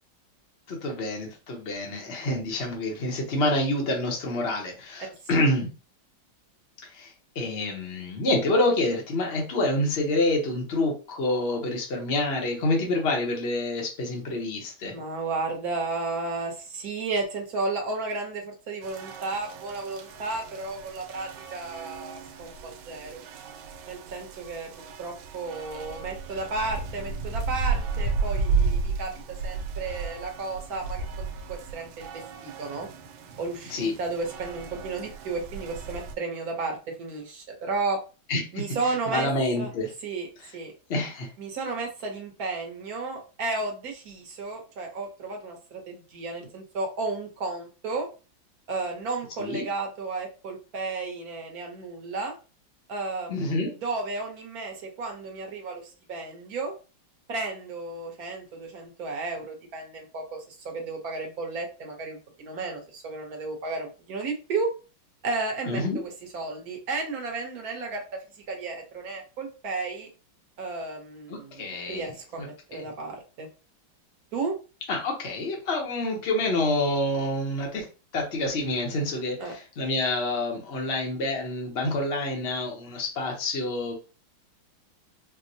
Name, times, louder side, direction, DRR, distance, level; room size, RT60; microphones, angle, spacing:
voice 1, 0.7-5.7 6.9-14.9 33.7-33.9 38.3-39.9 40.9-41.3 49.4-49.6 53.3-53.7 65.7-66.0 71.6-72.1 72.7-72.8 74.9-77.8 78.1-83.9, left 2 dB, 50° left, 0 dB, 0.8 m, -27 dB
voice 2, 14.9-23.2 23.9-24.7 25.0-31.0 31.5-32.9 33.4-38.0 38.5-39.3 39.6-39.7 40.0-40.3 40.5-40.7 41.4-48.1 48.7-52.3 52.9-56.7 57.3-64.7 65.2-70.1 70.6-73.5 74.3-74.5 79.4-79.6, right 3 dB, 55° right, 2 dB, 1.2 m, -33 dB
sound 1, 18.8-36.1, right 4 dB, 90° right, 1.4 m, -33 dB
4.4 x 2.1 x 2.7 m, 0.33 s
omnidirectional pair, 2.1 m